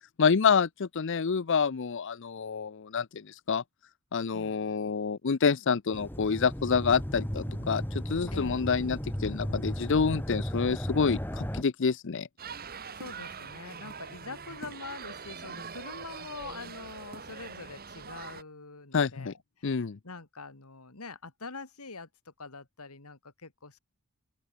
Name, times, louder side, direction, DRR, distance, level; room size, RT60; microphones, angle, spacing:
voice 1, 0.2-3.6 4.1-12.3 18.9-19.3 19.6-20.0, left 5 dB, 55° left, 0.6 m, -27 dB
voice 2, 4.3-4.7 7.6-7.7 8.3-9.0 13.0-19.8 20.0-23.8, left 3 dB, 80° left, 2.6 m, -45 dB
sound 1, 5.9-11.6, equal, 10° left, 2.3 m, -35 dB
sound 2, 12.4-18.4, right 5 dB, 45° right, 2.8 m, -43 dB
open air
head